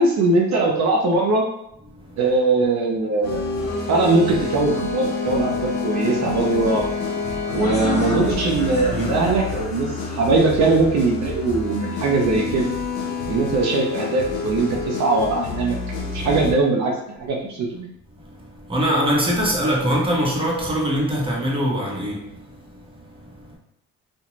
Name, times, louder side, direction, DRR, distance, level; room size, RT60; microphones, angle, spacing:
voice 1, 0.0-1.4 2.2-3.4 3.9-6.8 7.5-12.7 13.3-15.8 16.1-16.9 17.2-17.9, right 3 dB, 65° right, 0.6 m, -20 dB
voice 2, 1.9-2.2 7.3-7.6 8.9-9.2 13.2-13.3 18.2-23.6, equal, 20° right, 0.9 m, -24 dB
sound 1, 3.2-16.5, left 4 dB, 85° left, 0.6 m, -28 dB
sound 2, 7.5-12.9, left 5 dB, 20° left, 0.6 m, -34 dB
2.5 x 2.2 x 3.0 m
cardioid pair, 90°, 30 cm